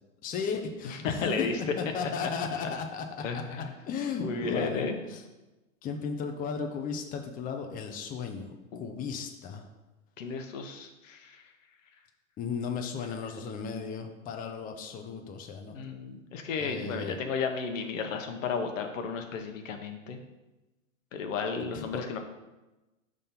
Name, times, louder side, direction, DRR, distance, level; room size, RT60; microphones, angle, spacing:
voice 1, 0.2-1.5 1.8-4.8 5.1-5.2 5.8-9.6 12.4-15.8 16.6-17.2 21.7-22.2, left 5 dB, 20° left, 4 dB, 0.6 m, -35 dB
voice 2, 0.8-1.6 2.6-2.7 3.2-3.8 4.2-5.0 8.7-8.9 10.2-11.4 15.7-20.2 21.1-22.2, left 5 dB, 70° left, 5 dB, 1.0 m, -33 dB
5.3 x 3.7 x 5.7 m, 1.1 s
hypercardioid pair, 105°, 39 cm